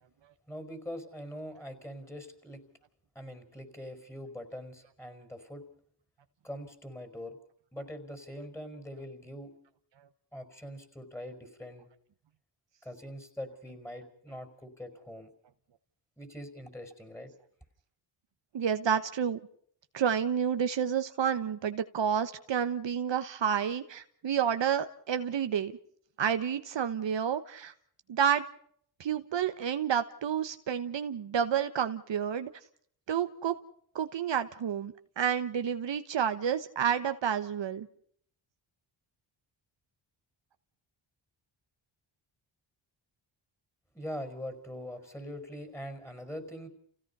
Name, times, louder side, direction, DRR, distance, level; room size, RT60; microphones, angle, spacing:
voice 1, 0.5-2.6 3.1-5.6 6.4-7.4 7.7-9.5 10.3-11.9 12.8-15.3 16.2-17.3 43.9-46.7, equal, 5° left, 9 dB, 5.0 m, -43 dB
voice 2, 18.5-19.4 19.9-25.7 26.2-27.7 28.1-28.5 29.0-32.5 33.1-33.5 33.9-37.9, right 8 dB, 65° right, 9 dB, 1.2 m, -30 dB
29.0 x 17.0 x 5.5 m, 0.62 s
cardioid pair, 70°, 48 cm